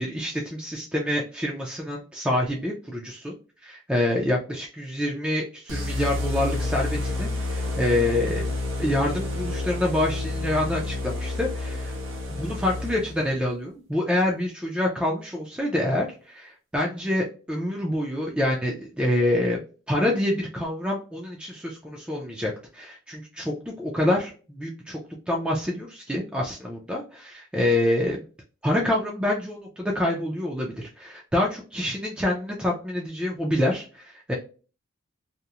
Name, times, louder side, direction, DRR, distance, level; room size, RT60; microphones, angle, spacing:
voice 1, 0.0-3.3 3.6-8.5 8.8-12.0 12.3-28.2 28.6-34.3, left 1 dB, 5° right, -2 dB, 0.4 m, -27 dB
sound 1, 5.7-13.3, left 2 dB, 85° right, 0.9 m, -29 dB
2.8 x 2.0 x 2.3 m, 0.36 s
head